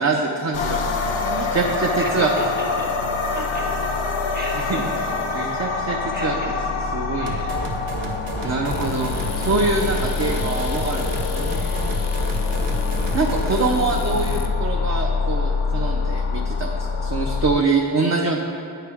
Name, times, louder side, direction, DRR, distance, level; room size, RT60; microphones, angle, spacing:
voice 1, 0.0-2.3 4.7-4.8 5.3-6.3 6.9-7.5 8.4-11.1 11.3-11.6 13.1-18.4, right 3 dB, 35° right, 1 dB, 0.5 m, -24 dB
sound 1, 0.5-17.5, left 4 dB, 90° left, 0.6 m, -25 dB
voice 2, 2.0-2.9 3.3-3.7 4.3-5.1 6.1-6.7 7.1-7.6 8.4-8.8 10.8-11.9, right 1 dB, 20° right, -2 dB, 1.1 m, -36 dB
sound 2, 7.3-13.8, right 2 dB, 75° right, 0.8 m, -31 dB
sound 3, 8.7-14.5, left 5 dB, 35° left, 0.4 m, -33 dB
8.9 x 3.2 x 4.8 m, 2.8 s
wide cardioid pair, 55°, 49 cm